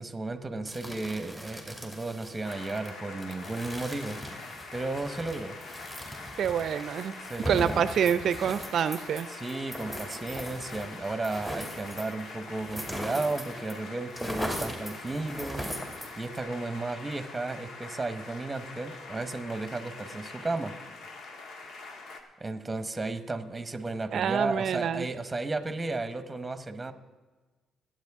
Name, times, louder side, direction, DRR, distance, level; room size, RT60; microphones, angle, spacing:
voice 1, 0.0-4.2 4.7-5.6 7.2-7.8 9.3-15.8 16.2-20.8 22.4-26.9, right 2 dB, 20° right, 10 dB, 1.1 m, -34 dB
sound 1, 0.7-13.8 14.0-16.4, equal, 15° left, 2.6 m, -40 dB
sound 2, 2.4-22.2, left 3 dB, 70° left, 1.5 m, -44 dB
voice 2, 6.4-7.1 7.5-9.3 24.1-25.1, right 8 dB, 65° right, 14 dB, 0.5 m, -27 dB
22.0 x 8.9 x 3.6 m, 1.3 s
cardioid pair, 90°, 0 cm